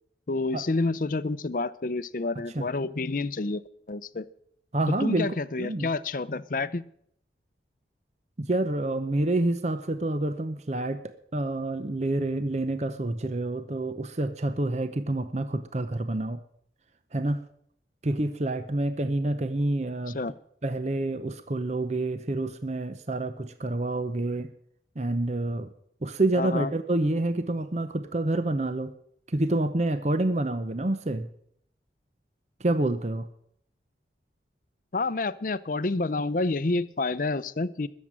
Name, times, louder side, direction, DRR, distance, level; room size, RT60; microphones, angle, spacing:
voice 1, 0.3-3.6 3.9-4.3 5.0-6.8 20.1-20.3 26.3-26.7 34.9-37.9, left 3 dB, 50° left, 16 dB, 0.6 m, -29 dB
voice 2, 4.7-5.3 5.6-5.9 8.4-16.4 17.1-17.4 18.0-20.2 20.6-24.5 25.0-25.7 26.0-28.9 29.3-31.3 32.6-33.3, right 2 dB, 40° right, 10 dB, 0.7 m, -28 dB
20.5 x 7.4 x 7.5 m, 0.69 s
head